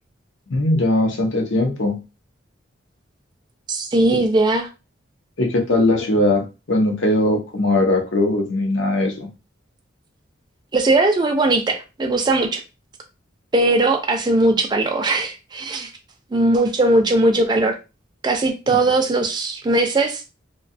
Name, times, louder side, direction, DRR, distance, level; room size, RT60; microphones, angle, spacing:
voice 1, 0.5-2.0 4.1-4.2 5.4-9.3, left 1 dB, 75° left, 0.7 m, -20 dB
voice 2, 3.7-4.7 10.7-12.6 13.5-15.9 16.3-17.8 18.2-20.2, right 2 dB, 25° right, 0.3 m, -19 dB
2.6 x 2.2 x 2.5 m
head